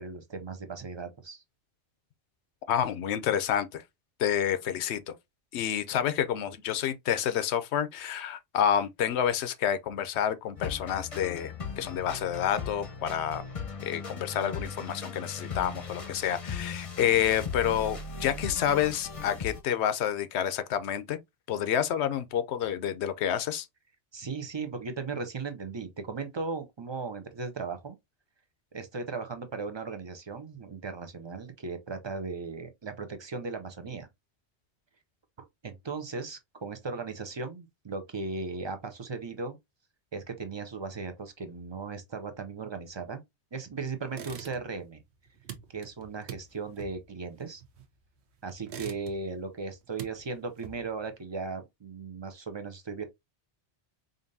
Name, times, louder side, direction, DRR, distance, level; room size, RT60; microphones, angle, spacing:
voice 1, 0.0-1.4 24.1-28.0 28.7-34.1 35.6-39.6 40.1-43.2 43.5-45.0 45.7-47.6 48.4-53.0, right 4 dB, 30° right, 0.5 m, -37 dB
voice 2, 2.7-3.8 4.2-5.1 5.5-13.4 13.8-21.2 21.5-23.7, left 9 dB, 75° left, 0.9 m, -29 dB
sound 1, 10.6-19.6, left 5 dB, 35° left, 0.7 m, -38 dB
sound 2, 44.1-44.9 45.1-48.1 48.5-49.4 49.7-51.1, right 8 dB, 70° right, 1.0 m, -44 dB
5.1 x 2.6 x 2.6 m
omnidirectional pair, 1.1 m